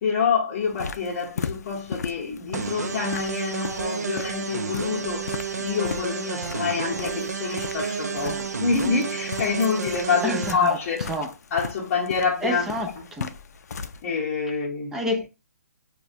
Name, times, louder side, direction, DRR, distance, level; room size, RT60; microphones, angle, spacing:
voice 1, 0.0-5.3 5.6-11.0 11.5-12.6 13.0-13.1 14.0-15.0, left 5 dB, 35° left, 0.8 m, -26 dB
sound 1, 0.6-14.0, left 5 dB, 75° left, 0.4 m, -37 dB
sound 2, 2.5-10.5, right 6 dB, 90° right, 0.5 m, -31 dB
voice 2, 10.2-11.3 12.4-13.3 14.9-15.3, equal, 5° right, 0.3 m, -29 dB
4.5 x 2.2 x 2.5 m
hypercardioid pair, 150°, 9 cm